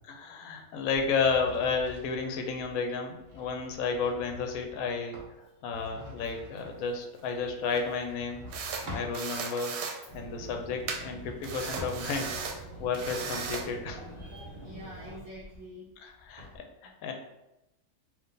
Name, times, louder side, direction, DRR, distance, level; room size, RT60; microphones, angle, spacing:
voice 1, 0.1-5.2 5.6-8.4 8.9-9.7 10.1-12.3 12.8-14.0 16.0-17.1, left 5 dB, 70° left, 3 dB, 1.0 m, -32 dB
sound 1, 0.9-9.2 10.0-12.4 12.9-16.6, left 2 dB, 35° right, 0.9 m, -48 dB
sound 2, 6.4-6.7 7.8-7.9 8.5-8.9 9.1-10.0 10.9-11.0 11.4-12.6 12.9-13.7, right 5 dB, 85° right, 1.1 m, -36 dB
sound 3, 10.1-15.2, right 2 dB, 25° left, 0.7 m, -45 dB
voice 2, 14.2-15.9, equal, 60° right, -8 dB, 1.5 m, -47 dB
3.7 x 2.7 x 3.8 m, 0.93 s
omnidirectional pair, 1.6 m